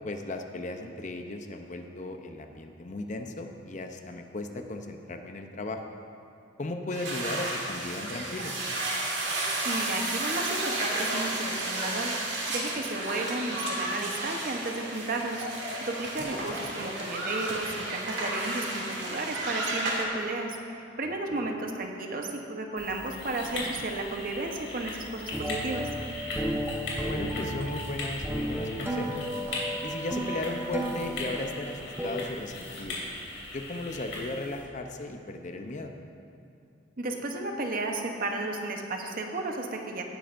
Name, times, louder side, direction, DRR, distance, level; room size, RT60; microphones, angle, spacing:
voice 1, 0.0-5.8 6.6-8.6 16.2-16.3 21.0-21.5 27.0-29.3 29.8-33.1 33.5-35.9, left 2 dB, 40° left, 5 dB, 0.6 m, -36 dB
sound 1, 6.9-20.0, right 2 dB, 70° right, 2.1 m, -32 dB
voice 2, 9.6-12.1 12.5-25.9 37.0-40.0, right 2 dB, 45° right, 3 dB, 0.9 m, -33 dB
sound 2, 22.8-34.6, left 2 dB, 70° left, 2.9 m, -39 dB
sound 3, 25.3-32.1, equal, 15° right, 1.0 m, -33 dB
17.5 x 9.7 x 2.6 m, 2.5 s
head